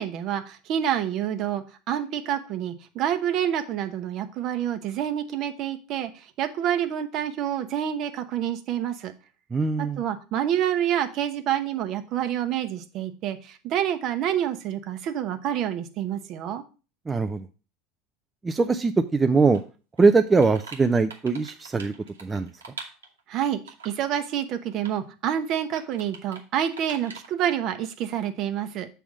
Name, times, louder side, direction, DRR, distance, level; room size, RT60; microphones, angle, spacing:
voice 1, 0.0-9.1 9.8-16.6 23.3-28.9, right 10 dB, 50° right, 8 dB, 0.9 m, -28 dB
voice 2, 9.5-10.0 17.1-17.4 18.4-19.6 20.0-21.9 22.2-22.5, right 4 dB, 20° right, 6 dB, 0.5 m, -21 dB
sound 1, 19.5-19.6 20.0-23.2 23.7-24.1 24.5-25.0 25.3-25.4 25.8-26.4 26.7-27.3, right 4 dB, 85° right, 1.2 m, -43 dB
7.2 x 3.5 x 6.1 m, 0.35 s
hypercardioid pair, 80°, 0 cm